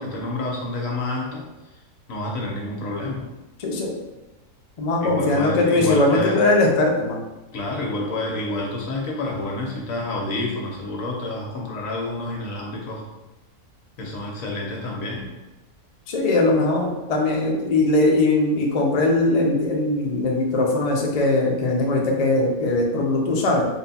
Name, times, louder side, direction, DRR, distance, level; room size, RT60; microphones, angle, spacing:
voice 1, 0.0-1.4 2.1-3.3 5.0-6.4 7.5-13.0 14.0-15.3, left 2 dB, 65° left, -1 dB, 1.2 m, -28 dB
voice 2, 3.6-4.0 4.8-7.2 16.1-23.6, left 2 dB, 85° left, -1 dB, 0.3 m, -20 dB
3.9 x 2.2 x 4.1 m, 1.1 s
omnidirectional pair, 1.6 m